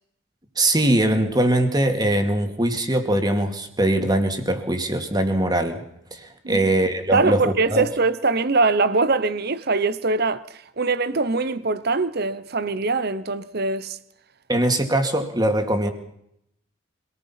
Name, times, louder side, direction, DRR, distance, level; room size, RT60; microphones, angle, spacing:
voice 1, 0.6-5.8 6.1-7.9 14.5-15.9, right 1 dB, 20° right, 2.4 m, -21 dB
voice 2, 7.1-10.4 10.8-14.0, right 3 dB, 50° right, 1.0 m, -22 dB
25.0 x 19.0 x 5.8 m
head